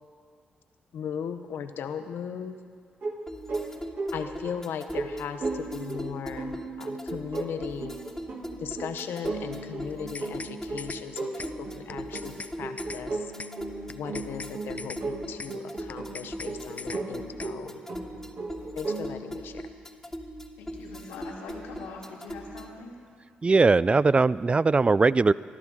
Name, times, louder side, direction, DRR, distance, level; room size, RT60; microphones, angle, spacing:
voice 1, 0.9-2.6 4.1-7.9 8.6-11.3 11.6-13.3 13.9-17.8 18.8-19.7, left 7 dB, 75° left, 8 dB, 0.9 m, -37 dB
sound 1, 3.0-19.1, right 3 dB, 60° right, 2.1 m, -36 dB
sound 2, 3.3-22.8, equal, 10° left, 1.2 m, -41 dB
sound 3, 9.9-10.5 10.8-11.0 11.4-11.5 11.9-12.5 12.8-13.0 13.4-13.5 13.9-14.5 14.8-15.0 15.4-15.5 15.9-16.5 16.8-17.0 17.4-17.5, left 4 dB, 40° left, 0.6 m, -39 dB
voice 2, 20.6-23.0, left 4 dB, 90° left, -2 dB, 2.1 m, -42 dB
voice 3, 23.4-25.3, right 3 dB, 30° right, 19 dB, 0.3 m, -20 dB
21.0 x 13.5 x 3.7 m, 2.1 s
supercardioid pair, 50°, 4 cm